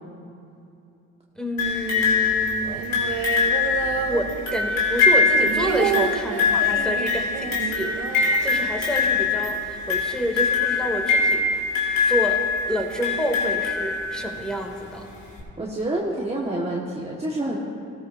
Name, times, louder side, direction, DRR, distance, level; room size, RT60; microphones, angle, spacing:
voice 1, 1.4-2.9 4.1-11.6 12.1-15.0, equal, ahead, 1 dB, 2.2 m, -29 dB
sound 1, 1.6-14.4 15.4-15.5, left 4 dB, 65° left, 3.2 m, -23 dB
sound 2, 2.6-4.8 5.1-9.0 9.3-9.4 9.7-10.2, right 9 dB, 75° right, 0.8 m, -30 dB
voice 2, 15.6-17.6, right 1 dB, 15° right, -4 dB, 1.4 m, -27 dB
16.5 x 13.5 x 2.6 m, 2.6 s
hypercardioid pair, 50°, 38 cm